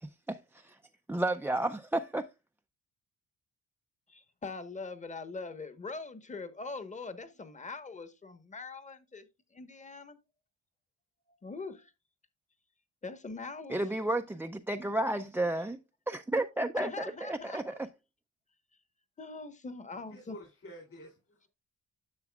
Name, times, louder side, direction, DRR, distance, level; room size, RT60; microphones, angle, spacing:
voice 1, 0.0-0.4 1.1-2.3 13.7-15.8 16.1-16.9 17.2-17.7, right 1 dB, 5° right, 0.4 m, -31 dB
voice 2, 4.1-10.2 11.4-11.9 13.0-13.8 16.8-17.8 19.2-20.4, left 3 dB, 25° left, 1.1 m, -42 dB
voice 3, 20.1-21.5, equal, 50° left, 2.8 m, -49 dB
11.0 x 6.8 x 2.3 m
cardioid pair, 90°, 30 cm